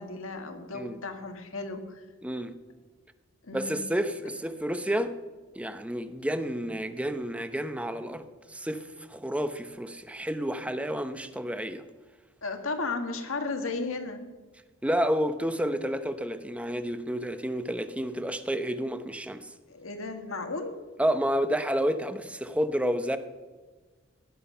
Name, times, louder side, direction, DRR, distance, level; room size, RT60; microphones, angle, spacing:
voice 1, 0.0-2.0 3.4-3.9 12.4-14.3 19.7-20.8, left 3 dB, 80° left, 6 dB, 1.8 m, -34 dB
voice 2, 2.2-2.5 3.5-5.1 5.5-11.8 14.8-19.5 21.0-23.2, equal, 5° right, 10 dB, 0.7 m, -30 dB
17.5 x 11.0 x 5.6 m, 1.3 s
head